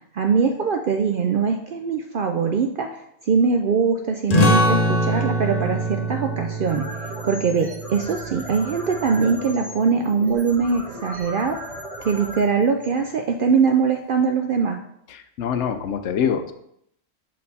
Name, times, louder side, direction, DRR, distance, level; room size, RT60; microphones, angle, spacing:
voice 1, 0.1-2.9 3.3-6.9 7.2-11.6 12.0-14.8, right 5 dB, 65° right, 4 dB, 0.5 m, -22 dB
sound 1, 4.3-9.5, equal, 35° left, 0.8 m, -24 dB
sound 2, 6.7-13.6, equal, 25° right, 1.5 m, -37 dB
voice 2, 15.1-16.5, left 7 dB, 70° left, 8 dB, 0.8 m, -25 dB
6.3 x 4.4 x 4.1 m, 0.74 s
omnidirectional pair, 1.3 m